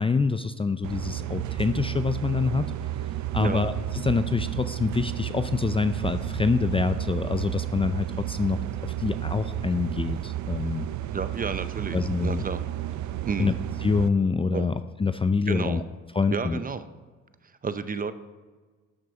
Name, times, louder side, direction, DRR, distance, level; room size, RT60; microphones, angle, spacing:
voice 1, 0.0-2.7 3.3-10.9 11.9-12.4 13.1-13.5 13.8-14.7 15.0-15.8 16.1-16.6, left 4 dB, 20° left, 10 dB, 0.4 m, -26 dB
sound 1, 0.8-14.1, right 13 dB, 70° right, 0.6 m, -32 dB
voice 2, 11.1-12.6 13.3-13.6 14.5-14.7 15.5-15.8 16.3-16.9 17.6-18.1, right 5 dB, 30° right, 12 dB, 0.6 m, -31 dB
12.5 x 6.1 x 5.0 m, 1.4 s
cardioid pair, 90°, 30 cm